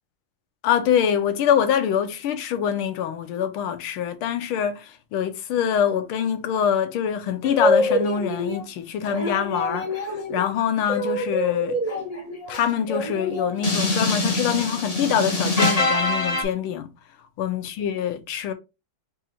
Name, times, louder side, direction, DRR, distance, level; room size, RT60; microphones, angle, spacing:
voice 1, 0.6-11.8 12.5-16.9 17.4-18.5, left 8 dB, 75° left, 1.5 m, -24 dB
sound 1, 7.4-8.6 9.0-16.4, left 1 dB, 40° left, 0.5 m, -25 dB
4.7 x 2.5 x 4.2 m
omnidirectional pair, 2.4 m